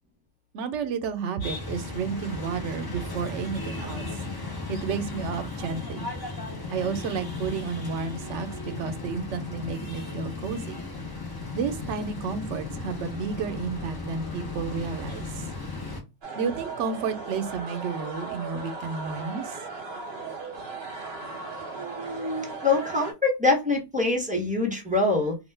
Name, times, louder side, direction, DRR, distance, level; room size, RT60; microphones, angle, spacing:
voice 1, 0.5-4.1 4.7-6.1 6.7-10.8 11.5-15.4 16.4-19.6, right 6 dB, 80° right, 0.9 m, -31 dB
sound 1, 1.4-16.0, left 3 dB, 30° left, 0.4 m, -36 dB
sound 2, 16.2-23.1, right 4 dB, 50° right, 0.9 m, -37 dB
voice 2, 21.7-25.4, left 3 dB, 10° right, 0.7 m, -25 dB
2.4 x 2.2 x 3.2 m
omnidirectional pair, 1.2 m